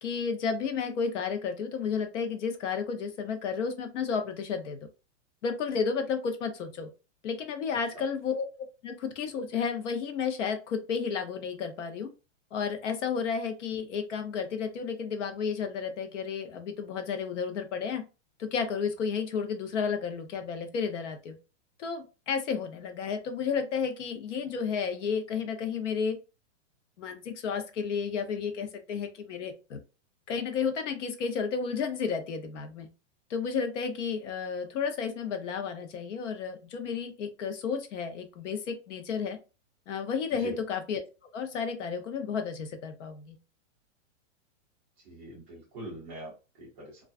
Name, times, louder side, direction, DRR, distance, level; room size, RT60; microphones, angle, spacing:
voice 1, 0.0-4.8 5.4-6.9 7.2-8.4 8.8-12.1 12.5-18.0 18.4-21.3 21.8-26.2 27.0-29.8 30.3-32.9 33.3-39.4 39.9-41.0 41.3-43.4, left 6 dB, 70° left, 7 dB, 0.7 m, -32 dB
voice 2, 45.0-47.0, right 1 dB, 10° right, -6 dB, 0.4 m, -43 dB
2.3 x 2.2 x 2.3 m, 0.30 s
supercardioid pair, 170°, 37 cm